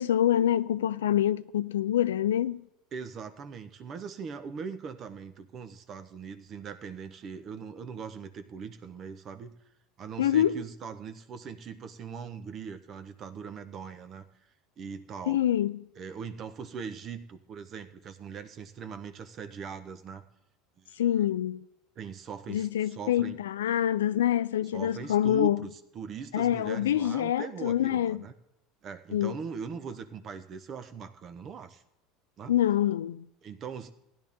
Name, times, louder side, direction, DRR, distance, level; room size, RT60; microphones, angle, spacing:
voice 1, 0.0-2.6 10.2-10.6 15.3-15.8 21.0-21.6 22.5-25.6 26.3-28.3 29.1-29.3 32.5-33.2, left 11 dB, 85° left, 0.3 m, -26 dB
voice 2, 2.9-9.5 10.0-14.2 14.8-15.4 16.0-20.2 20.8-21.0 22.0-23.4 24.7-28.3 28.8-31.8 32.4-32.5 33.4-33.9, right 6 dB, 45° right, 1.0 m, -40 dB
16.0 x 10.5 x 3.6 m
hypercardioid pair, 85°, 0 cm